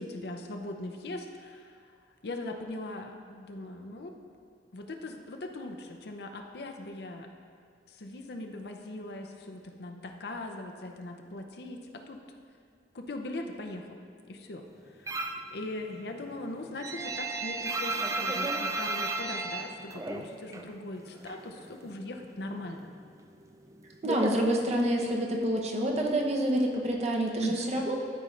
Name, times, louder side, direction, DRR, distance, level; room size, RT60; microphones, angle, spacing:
voice 1, 0.0-1.8 2.2-4.2 4.7-7.3 7.9-12.2 12.9-14.0 14.3-14.7 14.9-15.1 15.5-22.8 27.4-27.7, left 2 dB, 65° left, 3 dB, 0.7 m, -40 dB
sound 1, 15.1-15.5 15.9-20.7 21.0-22.0 22.3-25.1, right 2 dB, 20° right, 0.4 m, -34 dB
voice 2, 24.0-28.0, right 1 dB, 40° right, 0 dB, 0.9 m, -28 dB
13.0 x 5.1 x 3.3 m, 2.3 s
head